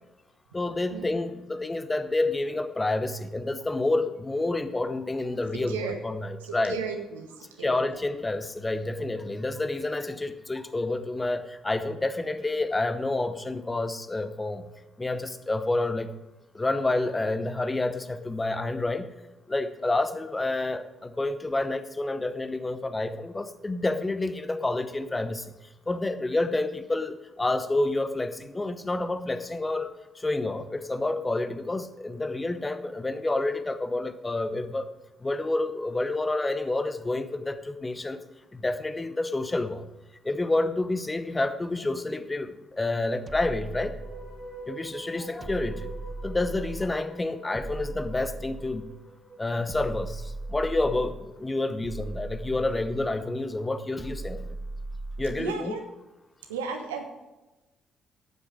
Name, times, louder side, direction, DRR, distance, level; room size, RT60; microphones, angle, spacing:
voice 1, 0.5-6.8 7.6-14.7 15.0-16.1 16.5-19.1 19.5-25.4 25.9-34.9 35.2-38.2 38.5-39.9 40.2-43.9 44.7-45.9 46.2-48.9 49.4-54.5 55.2-55.7, left 2 dB, 20° left, 11 dB, 1.0 m, -29 dB
voice 2, 5.5-6.0 6.4-7.8 55.4-55.8 56.5-57.0, right 5 dB, 75° right, 5 dB, 1.2 m, -35 dB
sound 1, 43.3-44.6 45.4-47.0 47.5-49.0 49.7-51.3 51.8-53.2 54.0-55.6, right 2 dB, 30° right, 0.7 m, -38 dB
sound 2, 43.7-50.9, right 2 dB, 15° right, 4.9 m, -46 dB
12.0 x 9.0 x 5.0 m, 1.1 s
figure-of-eight pair, 45°, 0 cm